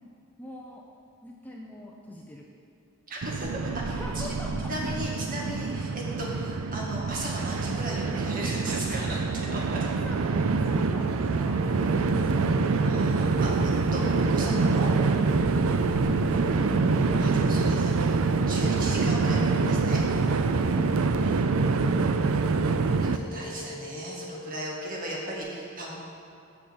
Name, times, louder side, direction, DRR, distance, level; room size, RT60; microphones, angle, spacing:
voice 1, 0.4-0.8 1.2-2.5 3.9-4.7 9.9-11.6 11.9-12.4 15.6-15.8 16.1-16.4 20.7-21.6 22.0-22.3, left 1 dB, 10° left, -2 dB, 0.7 m, -41 dB
voice 2, 3.1-9.9 10.6-10.8 11.2-11.4 12.8-14.9 17.2-20.0 21.2-21.3 21.8-21.9 23.0-25.9, right 1 dB, 40° right, -3 dB, 1.9 m, -37 dB
Train, 3.2-23.2, right 4 dB, 80° right, 0.5 m, -25 dB
sound 1, 11.5-25.4, left 3 dB, 25° right, 0.8 m, -41 dB
7.4 x 6.6 x 7.9 m, 2.6 s
head